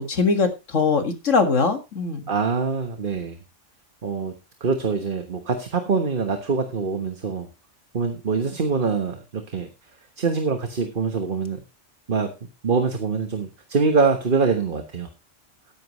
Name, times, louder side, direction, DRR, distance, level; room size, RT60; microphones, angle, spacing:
voice 1, 0.0-2.2, left 4 dB, 80° left, 6 dB, 2.2 m, -21 dB
voice 2, 2.3-3.4 4.0-4.3 4.6-7.5 7.9-9.7 10.2-11.6 12.1-12.3 12.6-15.1, right 4 dB, 45° right, 6 dB, 1.4 m, -24 dB
13.5 x 10.5 x 3.1 m, 0.26 s
omnidirectional pair, 1.3 m